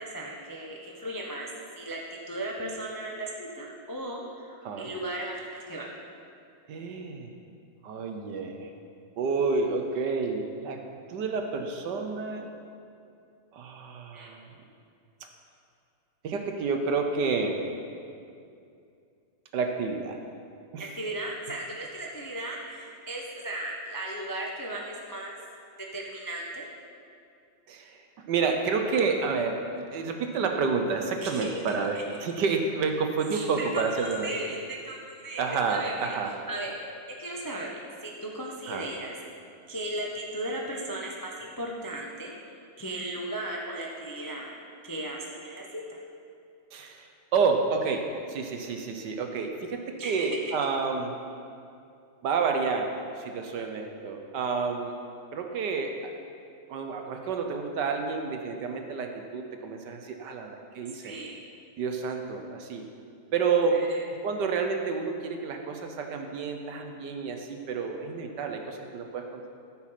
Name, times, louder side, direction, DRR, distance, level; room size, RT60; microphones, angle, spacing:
voice 1, 0.0-1.5 1.8-2.0 2.3-5.9 14.1-14.3 21.0-25.4 25.9-26.6 31.2-32.0 33.3-36.2 36.5-36.9 37.2-39.1 39.7-42.3 42.8-44.6 44.8-46.0 50.0-50.6 61.0-61.4 63.7-64.0, right 1 dB, 25° left, -2 dB, 0.4 m, -36 dB
voice 2, 6.7-7.3 7.8-8.7 9.2-10.8 11.1-12.5 13.5-14.5 16.2-17.7 19.5-20.2 20.7-20.9 27.7-28.0 28.3-34.3 35.4-36.3 38.7-38.9 46.7-47.1 47.3-51.1 52.2-55.0 55.3-56.1 56.7-61.1 61.8-62.8 63.3-63.8 64.2-69.5, right 4 dB, 65° right, 4 dB, 1.3 m, -29 dB
14.0 x 6.2 x 5.8 m, 2.5 s
omnidirectional pair, 2.2 m